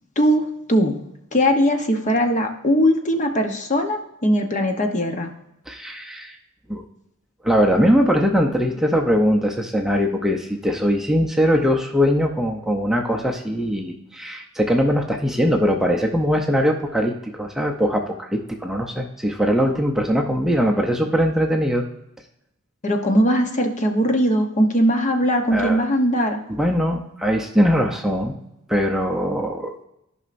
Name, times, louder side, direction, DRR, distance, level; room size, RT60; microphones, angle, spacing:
voice 1, 0.2-0.9 1.3-5.3 22.8-26.4, equal, 35° left, 4 dB, 0.9 m, -20 dB
voice 2, 5.7-6.4 6.7-6.8 7.4-21.8 25.5-25.8 26.5-28.4 28.7-29.8, equal, ahead, 1 dB, 0.6 m, -21 dB
14.0 x 5.5 x 2.6 m, 0.84 s
head